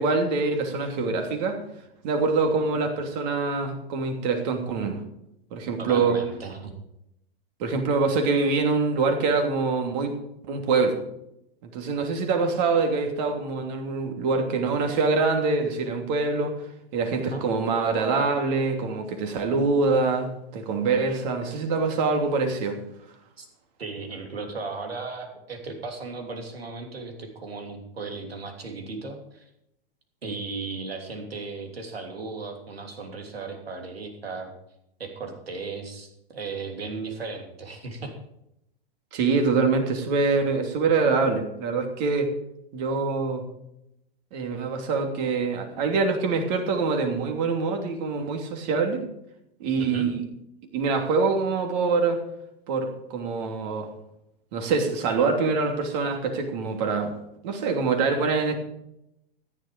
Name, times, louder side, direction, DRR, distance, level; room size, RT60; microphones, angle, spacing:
voice 1, 0.0-1.6 2.0-5.0 5.5-6.2 7.6-10.1 10.5-11.0 11.6-16.5 16.9-22.8 39.1-42.3 42.7-43.4 44.3-49.1 49.6-50.2 50.7-52.2 52.7-53.9 54.5-57.1 57.4-58.5, right 4 dB, 45° right, 4 dB, 3.0 m, -25 dB
voice 2, 5.8-6.7 17.3-17.4 23.4-23.5 23.8-29.5 30.2-34.5 35.0-38.2 49.8-50.1, right 4 dB, 80° right, 4 dB, 3.1 m, -36 dB
14.0 x 10.5 x 5.2 m, 0.82 s
figure-of-eight pair, 110°, 30 cm